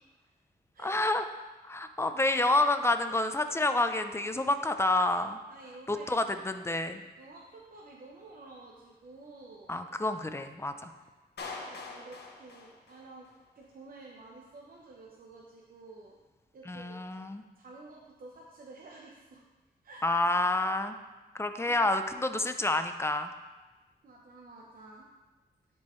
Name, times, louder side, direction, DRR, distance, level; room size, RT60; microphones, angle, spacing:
voice 1, 0.8-1.2 1.6-5.4 5.9-7.0 9.7-10.9 16.7-17.4 20.0-21.0 21.3-23.3, left 2 dB, 15° left, 8 dB, 0.5 m, -28 dB
voice 2, 5.5-6.4 7.2-9.9 11.0-11.1 11.6-13.3 13.5-16.2 16.5-17.0 17.6-19.5 19.8-20.1 21.7-21.9 24.0-25.1, right 2 dB, 55° right, -2 dB, 0.9 m, -51 dB
Clapping, 11.4-13.4, left 3 dB, 80° left, 0.9 m, -43 dB
10.5 x 4.6 x 3.1 m, 1.2 s
cardioid pair, 90°, 17 cm